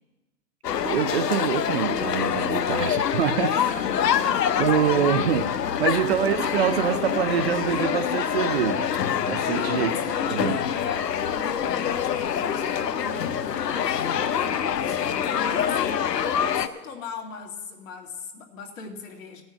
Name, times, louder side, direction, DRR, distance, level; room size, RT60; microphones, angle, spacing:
sound 1, 0.6-16.7, left 8 dB, 90° left, 0.9 m, -25 dB
voice 1, 0.8-3.6 4.6-9.0 9.3-9.9 10.3-10.6, right 9 dB, 40° right, 0.5 m, -25 dB
voice 2, 3.5-4.8 5.4-6.0 9.5-19.4, left 5 dB, 55° left, 2.2 m, -38 dB
15.5 x 6.3 x 8.4 m
hypercardioid pair, 145°, 47 cm